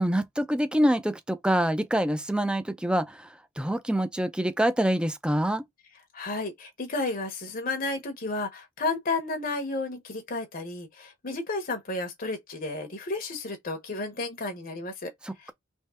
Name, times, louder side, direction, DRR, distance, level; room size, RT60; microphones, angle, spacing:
voice 1, 0.0-3.3 3.6-5.6 15.2-15.5, right 1 dB, 5° right, 0.5 m, -26 dB
voice 2, 6.1-15.1 15.4-15.5, left 3 dB, 45° left, 1.0 m, -32 dB
3.6 x 3.2 x 4.3 m
head